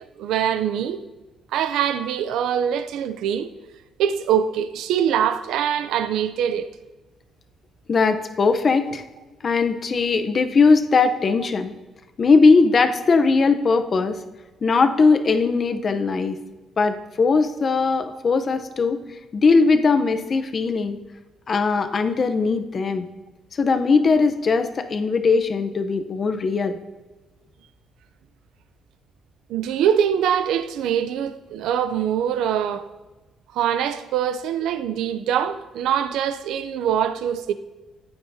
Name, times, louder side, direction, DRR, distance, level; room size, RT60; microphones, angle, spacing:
voice 1, 0.2-1.1 1.5-3.5 4.0-6.7 29.5-32.9 33.5-37.5, right 9 dB, 85° right, 0.6 m, -23 dB
voice 2, 7.9-9.0 9.4-11.7 12.2-14.2 14.6-16.4 16.8-19.0 19.3-21.0 21.5-23.1 23.5-26.8, left 4 dB, 40° left, 0.9 m, -19 dB
14.5 x 9.2 x 2.8 m
cardioid pair, 90°, 0 cm